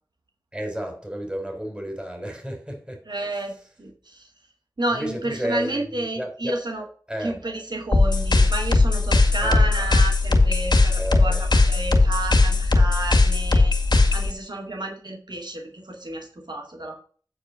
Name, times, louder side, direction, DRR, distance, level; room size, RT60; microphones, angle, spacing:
voice 1, 0.5-3.1 3.3-3.5 4.9-6.6 7.1-7.4 9.4-9.6 11.0-11.4, equal, 15° right, 3.4 m, -32 dB
voice 2, 3.1-4.3 4.8-6.8 7.2-13.7 14.1-17.0, right 2 dB, 80° right, 2.2 m, -31 dB
sound 1, 7.9-14.3, left 3 dB, 80° left, 1.9 m, -18 dB
9.0 x 4.5 x 6.3 m
wide cardioid pair, 40°, 7 cm